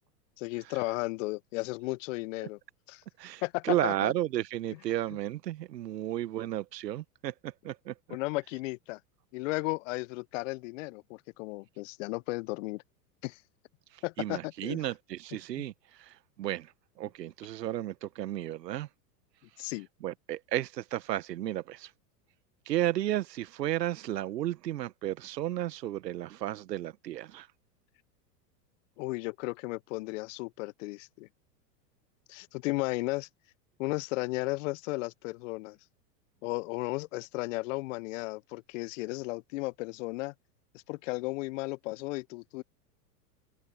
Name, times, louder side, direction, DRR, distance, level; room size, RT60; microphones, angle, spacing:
voice 1, 0.4-2.6 2.9-3.0 3.4-4.1 8.1-9.0 9.3-12.8 13.2-13.4 14.0-14.8 19.6-19.9 29.0-31.3 32.3-33.3 33.8-35.8 36.4-40.3 40.9-42.6, left 23 dB, 55° left, 0.5 m, -34 dB
voice 2, 3.2-7.9 13.9-16.7 17.0-18.9 20.0-21.9 22.7-27.5, right 13 dB, 85° right, 1.2 m, -33 dB
hypercardioid pair, 115°, 48 cm